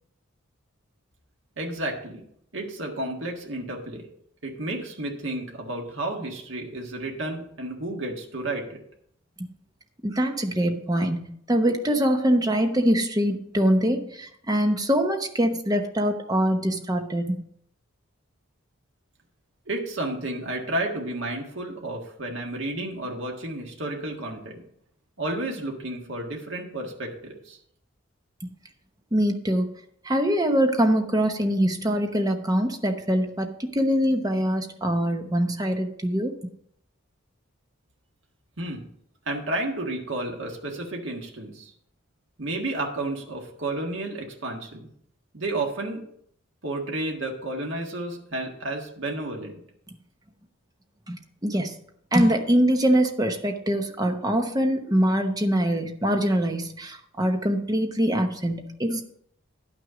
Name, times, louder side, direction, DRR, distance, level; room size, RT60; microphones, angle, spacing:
voice 1, 1.6-2.2 2.5-4.0 4.4-8.8 19.7-24.6 25.2-27.6 38.6-38.9 39.2-41.7 42.4-44.9 45.3-46.1 46.6-49.5, right 2 dB, 65° right, 0 dB, 1.6 m, -31 dB
voice 2, 10.0-17.4 28.4-28.5 29.1-29.7 30.0-36.3 51.1-51.8 52.1-59.0, equal, 20° right, 5 dB, 0.8 m, -23 dB
11.0 x 6.2 x 5.0 m, 0.69 s
head